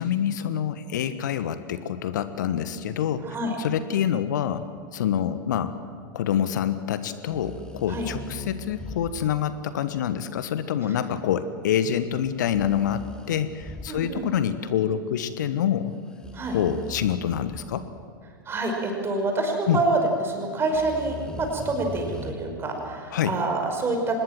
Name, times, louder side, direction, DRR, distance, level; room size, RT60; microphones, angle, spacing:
voice 1, 0.0-3.3 3.6-4.6 4.9-5.8 6.1-15.9 16.5-17.8 19.7-19.8 23.1-23.3, left 9 dB, 60° left, 12 dB, 1.3 m, -26 dB
voice 2, 3.2-3.5 7.9-8.1 13.9-14.3 16.3-16.6 18.5-24.2, right 2 dB, 20° right, 3 dB, 5.6 m, -27 dB
sound 1, 7.3-9.5 12.2-14.4 16.1-17.9 20.7-22.3, left 2 dB, 5° left, 2.3 m, -39 dB
25.0 x 21.0 x 7.6 m, 2.2 s
figure-of-eight pair, 90°, 11 cm